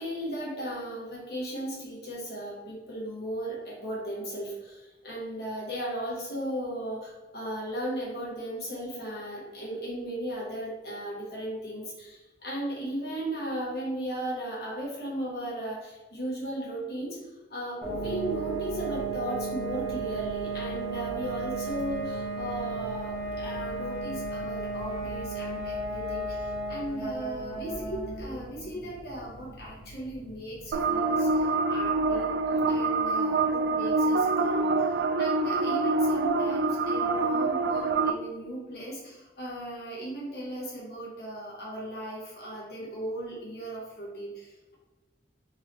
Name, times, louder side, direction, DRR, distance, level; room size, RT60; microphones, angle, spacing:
voice 1, 0.0-34.9 35.2-44.7, right 1 dB, 55° left, -5 dB, 1.5 m, -36 dB
sound 1, 17.8-32.4, right 3 dB, 5° right, 1.1 m, -35 dB
sound 2, 30.7-38.1, right 3 dB, 75° right, 0.3 m, -26 dB
3.7 x 2.9 x 3.3 m, 1.2 s
head